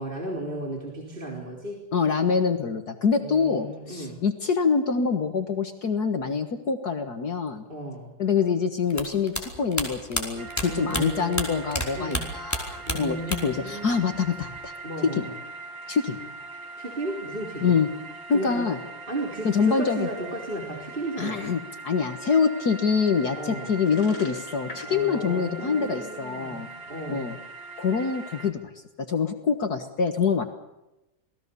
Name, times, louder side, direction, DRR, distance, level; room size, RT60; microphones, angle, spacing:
voice 1, 0.0-1.8 3.2-4.2 7.6-8.1 10.7-11.6 11.9-12.3 12.9-14.1 14.8-15.3 16.8-17.8 18.3-18.7 19.1-21.5 23.3-23.7 24.8-27.3, right 1 dB, 25° right, -1 dB, 4.0 m, -34 dB
voice 2, 1.9-7.6 8.2-13.2 13.4-14.7 15.0-15.3 15.9-16.2 17.6-17.9 18.3-18.8 19.4-20.1 21.2-26.7 27.1-27.4 27.8-28.6 29.0-30.4, left 5 dB, 55° left, 7 dB, 2.0 m, -25 dB
sound 1, 8.9-11.9 12.1-13.6 13.9-14.7, equal, 10° left, 4.8 m, -30 dB
sound 2, 10.4-28.5, right 3 dB, 80° right, 3.7 m, -42 dB
sound 3, 23.8-26.0, left 2 dB, 90° left, 7.6 m, -39 dB
27.5 x 20.0 x 7.0 m, 0.95 s
omnidirectional pair, 2.0 m